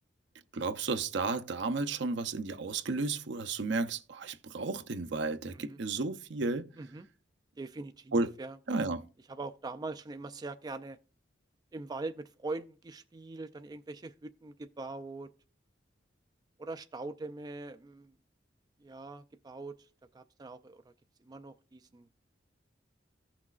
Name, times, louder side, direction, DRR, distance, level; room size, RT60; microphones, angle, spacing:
voice 1, 0.5-6.7 8.1-8.3 8.7-9.0, right 3 dB, 65° right, 0.6 m, -33 dB
voice 2, 7.6-8.9 9.3-11.0 11.7-15.3 16.6-18.1 18.8-20.9 21.2-22.1, right 3 dB, 20° right, 0.3 m, -42 dB
15.0 x 6.0 x 2.4 m
head